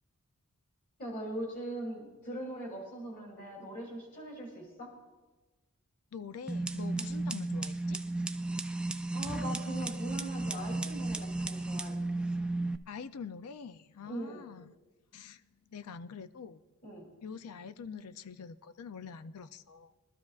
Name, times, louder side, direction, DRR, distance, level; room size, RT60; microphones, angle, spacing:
voice 1, 1.0-4.9 9.1-12.0 14.0-14.5 16.8-17.1, right 1 dB, 45° left, -2 dB, 2.9 m, -41 dB
voice 2, 6.1-8.0 12.9-14.8 15.1-15.4 15.7-16.6 17.2-19.9, left 6 dB, 80° left, 12 dB, 0.5 m, -45 dB
sound 1, 6.5-12.8, right 2 dB, 5° right, 0.4 m, -34 dB
23.0 x 13.0 x 2.4 m, 1.2 s
head